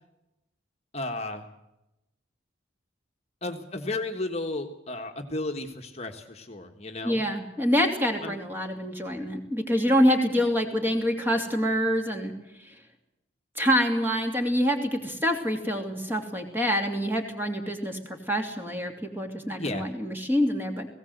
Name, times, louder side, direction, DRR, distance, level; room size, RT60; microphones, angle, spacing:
voice 1, 0.9-1.5 3.4-7.2 8.2-8.3 19.6-19.8, left 2 dB, 35° left, 4 dB, 1.5 m, -33 dB
voice 2, 7.0-12.3 12.6-12.7 13.6-20.9, equal, 10° right, 4 dB, 2.8 m, -26 dB
19.0 x 17.5 x 8.0 m, 0.90 s
head